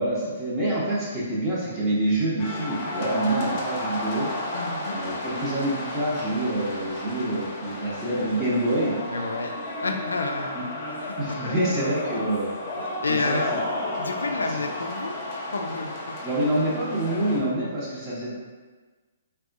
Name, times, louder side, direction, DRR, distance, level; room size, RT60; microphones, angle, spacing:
voice 1, 0.0-4.3 4.9-9.0 10.5-10.6 11.2-12.5 13.1-13.4 16.2-18.3, right 1 dB, 20° right, -11 dB, 0.8 m, -26 dB
sound 1, 2.4-17.4, left 1 dB, 35° left, 0.7 m, -33 dB
voice 2, 4.5-5.0 9.1-9.5 9.8-10.7 11.1-11.2 11.4-11.8 12.1-12.3 12.8-13.5 14.0-15.1 15.5-16.1, left 3 dB, 80° left, 4 dB, 0.3 m, -30 dB
3.4 x 2.2 x 2.5 m, 1.3 s
figure-of-eight pair, 125°, 0 cm